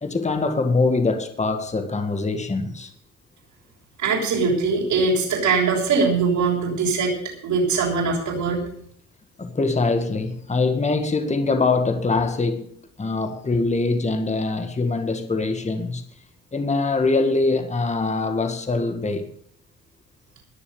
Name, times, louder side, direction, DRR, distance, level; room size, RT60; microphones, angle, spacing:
voice 1, 0.0-2.9 9.4-16.0 16.5-19.3, left 3 dB, 25° left, 1.8 m, -23 dB
voice 2, 4.0-7.2 7.4-8.6, right 4 dB, 80° right, 6.7 m, -21 dB
21.0 x 7.0 x 7.1 m
cardioid pair, 90°, 30 cm